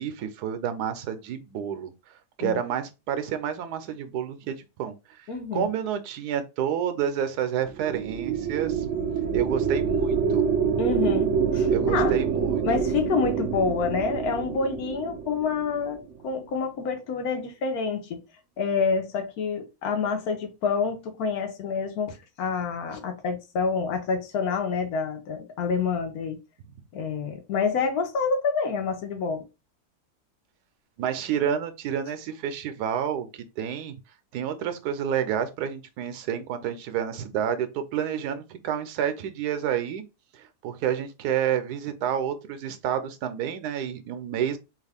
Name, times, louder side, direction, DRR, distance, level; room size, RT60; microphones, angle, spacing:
voice 1, 0.0-1.9 2.4-5.2 5.5-8.9 9.3-10.4 11.7-12.6 31.0-34.0 34.3-40.0 40.3-44.6, right 9 dB, 90° right, 1.2 m, -29 dB
voice 2, 5.3-5.7 10.8-12.1 12.6-18.2 18.6-26.4 26.9-29.4, left 5 dB, 75° left, 1.2 m, -28 dB
sound 1, 7.7-16.2, right 6 dB, 70° right, 0.7 m, -26 dB
3.1 x 2.4 x 3.4 m
omnidirectional pair, 1.6 m